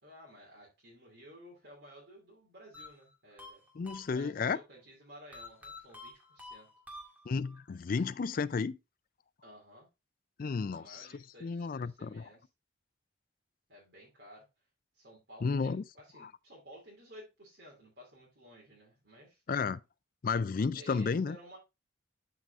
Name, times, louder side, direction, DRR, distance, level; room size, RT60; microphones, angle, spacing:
voice 1, 0.0-3.6 4.0-6.7 9.4-9.9 10.7-12.4 13.7-14.5 14.9-19.4 20.8-21.6, equal, 60° right, 2.7 m, -54 dB
sound 1, 2.7-4.6 5.3-7.6, left 2 dB, 10° right, 1.8 m, -49 dB
voice 2, 3.7-4.6 7.3-8.8 10.4-11.1 11.4-12.3 15.4-15.8 16.2-16.3 19.5-19.8 20.2-21.4, left 5 dB, 45° left, 0.4 m, -32 dB
11.5 x 4.8 x 2.5 m
head